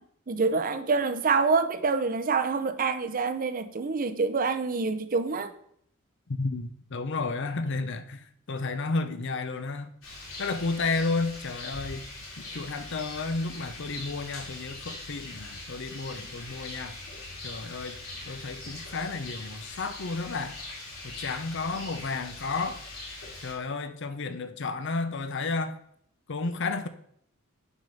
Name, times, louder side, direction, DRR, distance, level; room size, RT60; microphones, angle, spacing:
voice 1, 0.3-5.5, right 4 dB, 40° right, 0.6 m, -26 dB
voice 2, 6.4-8.2 8.5-9.9 10.4-12.1 12.4-16.9 17.4-18.0 18.3-20.5 21.0-22.8 23.4-25.8 26.3-26.9, left 3 dB, 60° left, 0.7 m, -32 dB
Rain, 10.0-23.5, left 2 dB, 75° left, 2.9 m, -42 dB
6.2 x 5.3 x 5.6 m
head